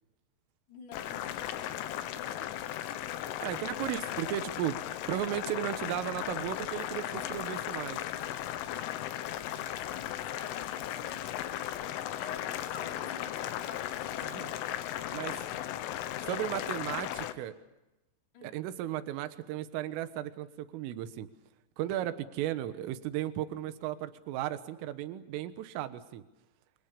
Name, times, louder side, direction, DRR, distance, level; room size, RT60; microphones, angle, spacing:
voice 1, 0.7-3.1 3.5-3.9 9.8-11.8 12.2-14.4 15.3-15.7 16.3-17.5 18.3-18.6, left 5 dB, 55° left, 1 dB, 5.6 m, -50 dB
Boiling, 0.9-17.3, left 12 dB, 80° left, 3.6 m, -36 dB
voice 2, 3.4-4.8 5.1-8.0 14.2-14.5 15.1-15.4 16.3-17.5 18.4-21.3 21.8-26.2, right 12 dB, 80° right, 11 dB, 3.8 m, -35 dB
28.5 x 26.0 x 6.9 m, 1.0 s
omnidirectional pair, 5.8 m